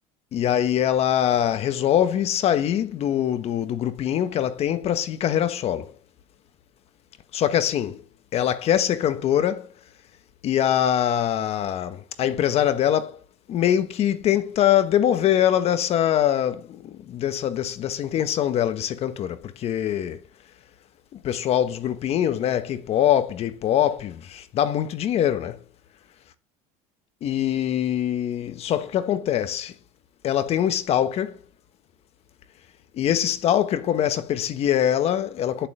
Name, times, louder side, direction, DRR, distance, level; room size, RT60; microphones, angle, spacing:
voice 1, 0.3-5.9 7.3-8.0 8.3-9.7 10.4-13.1 13.5-20.2 21.1-25.6 27.2-29.7 30.2-31.4 32.9-35.7, left 10 dB, 40° left, 1.2 m, -23 dB
11.0 x 7.0 x 8.8 m
cardioid pair, 150°, 15 cm